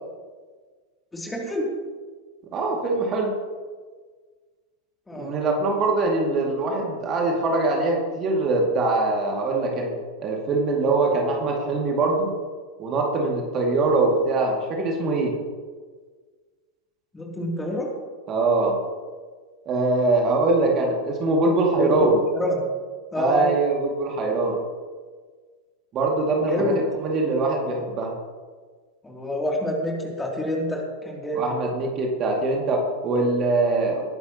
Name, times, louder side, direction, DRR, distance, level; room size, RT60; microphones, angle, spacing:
voice 1, 1.1-1.8 5.1-5.3 17.1-17.9 21.7-22.6 23.1-23.5 26.5-26.8 29.0-31.5, left 1 dB, 10° left, -1 dB, 3.0 m, -26 dB
voice 2, 2.5-3.3 5.1-9.9 10.2-12.3 12.8-15.4 18.3-18.8 19.7-22.2 23.1-24.6 25.9-28.1 31.3-34.0, right 3 dB, 30° right, 0 dB, 2.4 m, -23 dB
20.0 x 11.5 x 3.0 m, 1.5 s
figure-of-eight pair, 90°, 0 cm